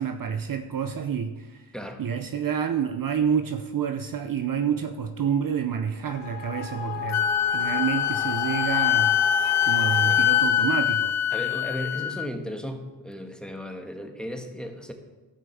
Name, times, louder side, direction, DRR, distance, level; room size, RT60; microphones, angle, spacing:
voice 1, 0.0-1.7 2.0-9.2 9.6-11.2, right 7 dB, 45° right, 8 dB, 0.7 m, -28 dB
sound 1, 6.1-10.4, left 6 dB, 60° left, 1.9 m, -34 dB
Wind instrument woodwind instrument, 7.1-12.3, left 10 dB, 40° left, 0.5 m, -23 dB
voice 2, 11.3-14.9, equal, ahead, 4 dB, 1.5 m, -35 dB
14.0 x 5.2 x 6.9 m, 1.2 s
cardioid pair, 80°, 47 cm